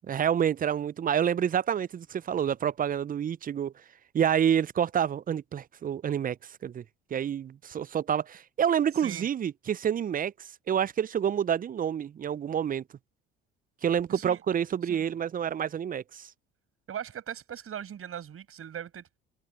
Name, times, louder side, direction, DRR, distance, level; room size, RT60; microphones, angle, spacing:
voice 1, 0.1-3.7 4.1-6.4 6.6-6.8 7.1-10.3 10.7-12.8 13.8-16.3, right 8 dB, 30° right, 0.5 m, -28 dB
voice 2, 9.0-9.3 14.1-14.4 14.9-15.0 16.9-19.2, right 9 dB, 50° right, 6.8 m, -39 dB
hypercardioid pair, 60°, 29 cm